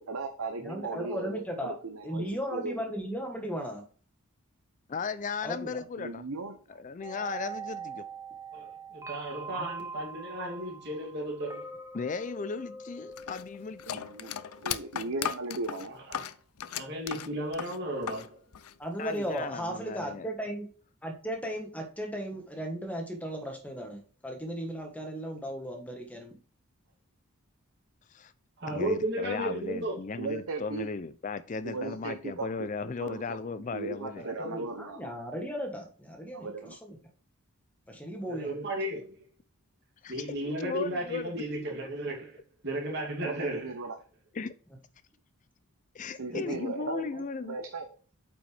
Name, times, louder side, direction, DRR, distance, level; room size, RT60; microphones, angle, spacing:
voice 1, 0.0-3.0 6.0-6.8 13.9-15.9 30.2-30.9 31.6-33.4 33.7-35.1 36.3-36.8 43.2-44.0 46.2-47.9, right 3 dB, 75° right, 0.8 m, -37 dB
voice 2, 0.6-1.7 2.0-3.8 5.4-5.8 9.6-9.7 18.8-20.7 21.0-26.3 34.8-36.9 37.9-38.5 46.3-46.5, equal, 5° left, 1.4 m, -36 dB
voice 3, 4.9-6.2 6.8-8.1 11.9-14.0 19.0-20.3 28.1-28.3 28.7-34.3 40.0-41.4 41.8-41.9 44.3-44.5 45.9-47.6, left 4 dB, 35° left, 0.4 m, -36 dB
sound 1, 7.0-15.0, right 4 dB, 15° right, 0.7 m, -43 dB
voice 4, 8.5-11.7 16.1-16.2 16.7-18.4 28.6-30.0 34.2-34.7 38.2-39.2 40.1-43.7, right 1 dB, 50° right, 2.7 m, -34 dB
sound 2, 13.2-18.3 18.5-19.4, left 9 dB, 85° left, 0.5 m, -36 dB
8.6 x 5.3 x 3.4 m
head